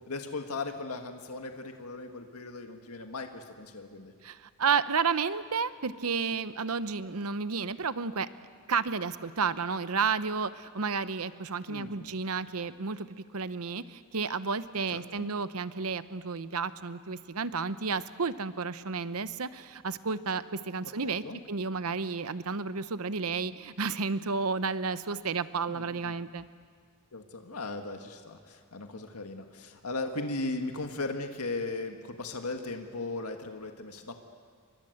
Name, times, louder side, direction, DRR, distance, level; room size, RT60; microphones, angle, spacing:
voice 1, 0.0-4.1 11.7-12.1 14.9-15.3 20.8-21.4 25.7-26.2 27.1-34.2, left 3 dB, 85° left, 5 dB, 1.8 m, -37 dB
voice 2, 4.2-8.3 8.7-13.1 13.3-26.4, right 5 dB, 80° right, 14 dB, 0.9 m, -31 dB
29.5 x 24.0 x 8.0 m, 2.1 s
head